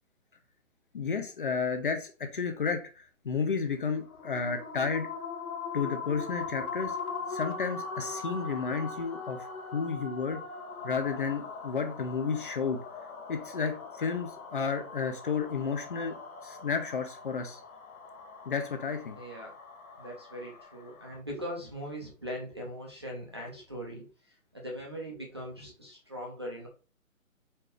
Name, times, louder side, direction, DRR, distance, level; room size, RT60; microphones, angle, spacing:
voice 1, 0.9-5.1 5.7-7.0 7.3-9.4 9.7-10.4 10.8-12.8 13.3-16.1 16.4-17.6 18.5-19.2, left 5 dB, 40° left, 7 dB, 0.7 m, -32 dB
sound 1, 3.9-21.2, left 4 dB, 80° left, 1.1 m, -41 dB
voice 2, 19.1-19.5 20.0-24.1 24.5-26.7, equal, 20° right, -4 dB, 0.5 m, -40 dB
4.3 x 3.6 x 3.3 m, 0.35 s
hypercardioid pair, 165°, 42 cm